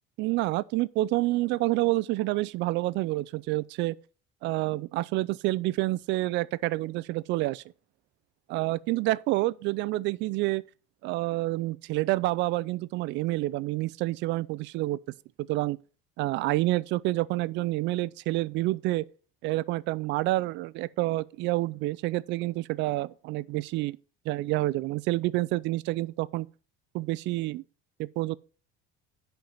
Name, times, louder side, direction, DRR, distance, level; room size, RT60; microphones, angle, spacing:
voice 1, 0.2-3.9 4.4-7.6 8.5-10.6 11.0-15.0 15.4-15.8 16.2-19.0 19.4-24.0 24.3-26.5 26.9-27.6 28.0-28.4, right 18 dB, 60° right, 0.4 m, -28 dB
10.5 x 4.6 x 5.4 m
cardioid pair, 155°, 21 cm